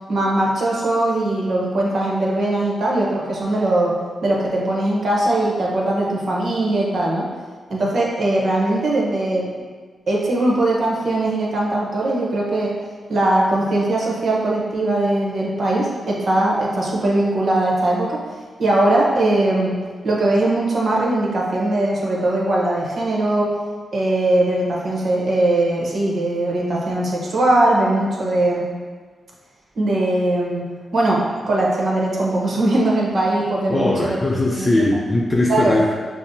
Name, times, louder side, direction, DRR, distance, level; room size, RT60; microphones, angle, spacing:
voice 1, 0.1-7.3 7.7-9.5 10.1-12.8 13.1-18.2 18.6-19.8 20.0-23.5 23.9-28.7 29.8-34.2 34.5-34.7 35.5-35.8, right 1 dB, 60° right, -3 dB, 1.0 m, -20 dB
voice 2, 33.7-35.9, left 1 dB, 35° left, -4 dB, 0.6 m, -19 dB
5.8 x 2.1 x 2.7 m, 1.5 s
cardioid pair, 55°, 0 cm